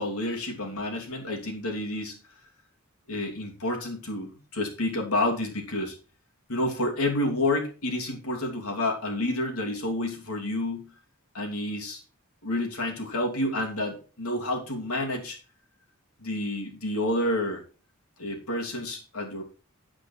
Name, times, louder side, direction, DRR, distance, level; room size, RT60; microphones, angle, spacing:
voice 1, 0.0-2.2 3.1-6.0 6.5-10.9 11.3-12.0 12.4-15.4 16.2-17.6 18.2-19.4, left 1 dB, 80° left, 1 dB, 2.8 m, -29 dB
8.5 x 8.0 x 4.5 m, 0.35 s
head